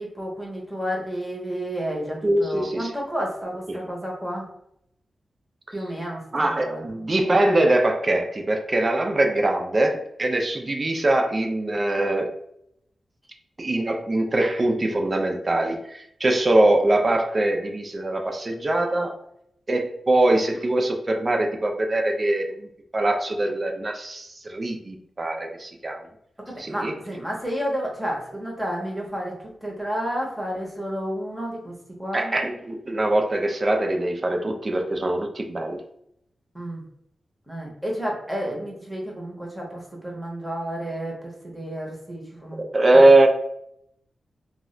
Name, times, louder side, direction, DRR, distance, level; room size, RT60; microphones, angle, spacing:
voice 1, 0.0-4.5 5.7-6.2 6.6-7.1 26.7-29.3 29.6-32.3 36.5-36.8 37.5-42.6 42.9-43.1, equal, 5° right, -2 dB, 0.7 m, -31 dB
voice 2, 2.2-2.9 3.7-3.8 6.3-12.3 13.6-19.2 19.7-26.0 26.6-27.0 32.1-35.8 42.6-43.3, right 1 dB, 30° right, 3 dB, 0.3 m, -22 dB
2.3 x 2.1 x 3.6 m, 0.75 s
wide cardioid pair, 155°, 0 cm